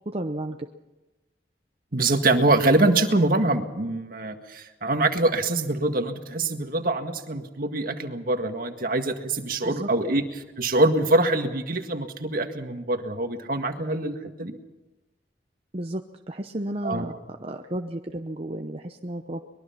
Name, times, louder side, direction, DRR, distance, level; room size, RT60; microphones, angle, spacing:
voice 1, 0.1-0.7 9.6-9.9 15.7-16.0 16.3-19.4, right 1 dB, 35° right, 4 dB, 0.9 m, -32 dB
voice 2, 1.9-14.6 16.8-17.2, right 2 dB, 50° right, 6 dB, 1.9 m, -24 dB
23.5 x 21.5 x 5.8 m, 1.1 s
head